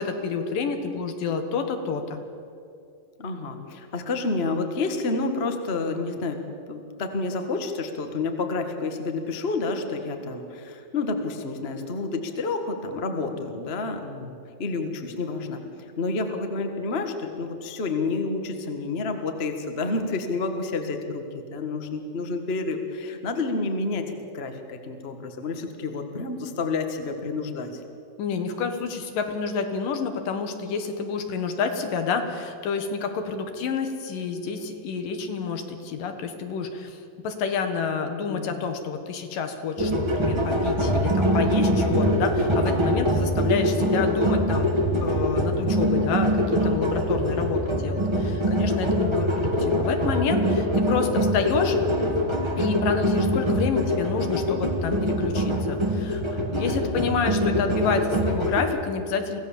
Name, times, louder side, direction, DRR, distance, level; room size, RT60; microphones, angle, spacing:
voice 1, 0.0-2.2 28.2-51.8 52.6-59.4, left 5 dB, 75° left, 6 dB, 3.1 m, -29 dB
voice 2, 3.2-6.4 6.7-14.3 14.6-27.8 38.2-38.5, left 3 dB, 50° left, 5 dB, 0.7 m, -29 dB
sound 1, 39.8-58.6, equal, 35° right, 0.4 m, -23 dB
24.5 x 16.0 x 7.3 m, 2.6 s
omnidirectional pair, 4.0 m